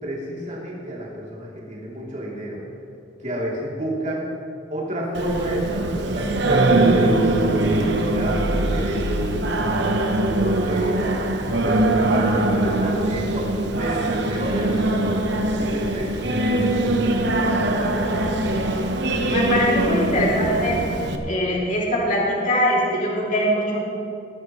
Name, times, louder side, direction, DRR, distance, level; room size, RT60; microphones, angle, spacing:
voice 1, 0.0-2.6 3.2-4.3 4.7-7.1 7.4-10.0 10.4-11.3 11.6-15.3 15.6-16.1 16.6-18.4, right 1 dB, 40° right, -5 dB, 3.3 m, -30 dB
Singing, 5.1-21.2, right 2 dB, 65° right, 1.1 m, -22 dB
voice 2, 19.3-20.9 21.2-23.8, equal, 45° left, -4 dB, 2.9 m, -22 dB
21.0 x 12.5 x 3.2 m, 2.7 s
head